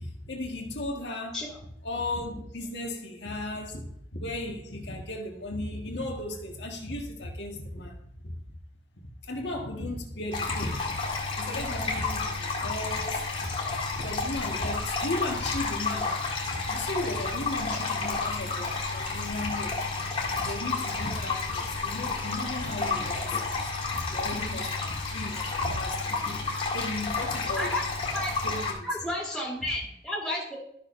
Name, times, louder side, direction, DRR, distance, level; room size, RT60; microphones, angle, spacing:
voice 1, 0.0-1.5 1.8-8.0 8.2-8.3 9.0-11.0 11.4-16.2 16.5-19.8 20.4-27.8 28.4-28.9 29.4-29.5, left 1 dB, 85° left, 1.8 m, -35 dB
sound 1, 10.3-28.7, left 4 dB, 30° left, 2.0 m, -31 dB
voice 2, 28.8-30.5, left 1 dB, 5° right, 2.1 m, -31 dB
13.0 x 6.6 x 2.7 m
head